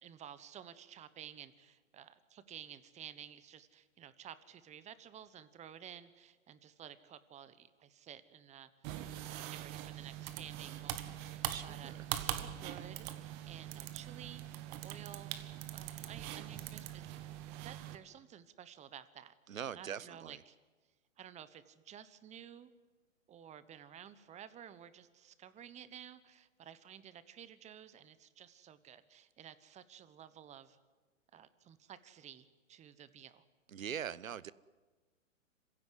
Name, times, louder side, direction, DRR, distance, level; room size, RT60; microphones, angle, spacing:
voice 1, 0.0-8.9 9.3-20.6 21.2-22.7 23.3-30.8 31.3-33.4, right 9 dB, 15° right, 15 dB, 1.1 m, -53 dB
sound 1, 8.8-18.0, right 12 dB, 35° right, 1.6 m, -42 dB
voice 2, 11.5-12.0 19.5-20.4 33.7-34.5, right 8 dB, 90° right, 20 dB, 0.9 m, -42 dB
26.5 x 16.0 x 9.5 m, 1.3 s
hypercardioid pair, 125°, 39 cm